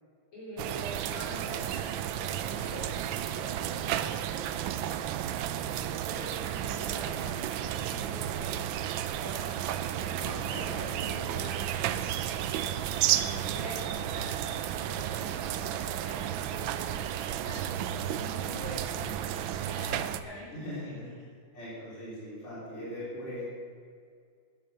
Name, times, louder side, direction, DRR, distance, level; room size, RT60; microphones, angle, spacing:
voice 1, 0.3-5.2 5.8-12.7 13.1-21.1, right 1 dB, 85° left, -6 dB, 5.4 m, -45 dB
sound 1, 0.6-20.2, right 10 dB, 80° right, 1.4 m, -32 dB
voice 2, 10.0-11.8 20.5-21.1 21.5-23.4, equal, 35° left, -7 dB, 4.2 m, -41 dB
11.5 x 10.5 x 6.7 m, 2.2 s
omnidirectional pair, 2.2 m